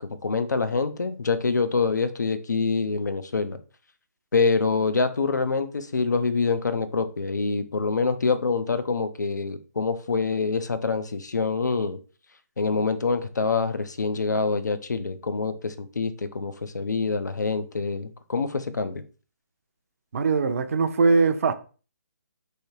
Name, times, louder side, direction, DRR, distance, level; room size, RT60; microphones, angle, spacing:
voice 1, 0.0-3.6 4.3-12.0 12.6-19.0, left 4 dB, 85° left, 0.6 m, -26 dB
voice 2, 20.1-21.5, right 4 dB, 50° right, 0.5 m, -21 dB
3.2 x 2.8 x 4.5 m
hypercardioid pair, 155°, 9 cm